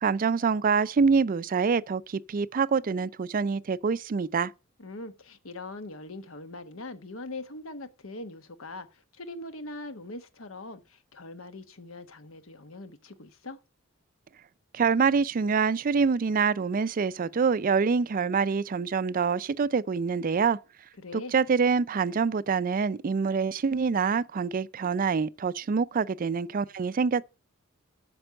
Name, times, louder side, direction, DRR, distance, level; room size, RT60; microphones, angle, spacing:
voice 1, 0.0-4.5 14.7-20.6 21.1-27.3, right 5 dB, 40° right, 0.4 m, -26 dB
voice 2, 4.8-13.6 21.0-21.3, left 2 dB, 70° left, 1.2 m, -42 dB
8.9 x 6.1 x 6.4 m
head